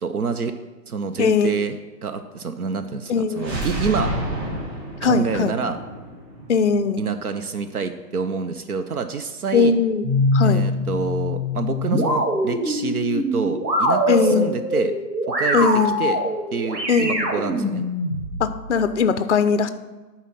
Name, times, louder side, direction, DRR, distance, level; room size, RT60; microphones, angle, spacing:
voice 1, 0.0-0.5 0.9-1.8 2.0-4.1 5.0-5.8 7.0-9.8 10.4-14.9 15.4-15.7 16.0-16.2 16.5-17.8, right 5 dB, 65° right, 9 dB, 0.7 m, -27 dB
voice 2, 1.2-1.5 3.1-3.6 5.0-5.6 6.5-7.0 9.5-10.1 10.3-10.7 14.1-14.5 15.5-16.0 16.9-17.3 18.4-19.7, left 5 dB, 50° left, 11 dB, 0.4 m, -20 dB
sound 1, 3.3-7.2, right 1 dB, 40° right, 3.1 m, -29 dB
sound 2, 10.0-18.6, left 1 dB, 85° right, 2.3 m, -23 dB
11.0 x 4.4 x 5.9 m, 1.2 s
hypercardioid pair, 165°, 49 cm